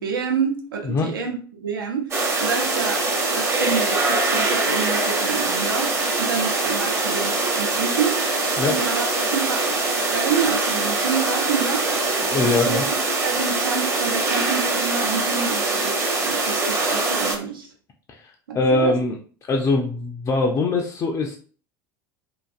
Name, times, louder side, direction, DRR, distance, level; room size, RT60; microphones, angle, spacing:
voice 1, 0.0-2.1 2.4-8.3 8.7-9.1 9.3-9.7 10.1-11.9 12.4-13.0 13.2-17.7 18.5-18.9, right 6 dB, 75° right, 0.7 m, -28 dB
sound 1, 2.1-17.4, right 3 dB, 20° right, 0.7 m, -23 dB
voice 2, 12.2-12.9 18.1-19.2 19.5-21.4, left 3 dB, 25° left, 0.4 m, -22 dB
2.5 x 2.4 x 2.4 m
figure-of-eight pair, 75°, 12 cm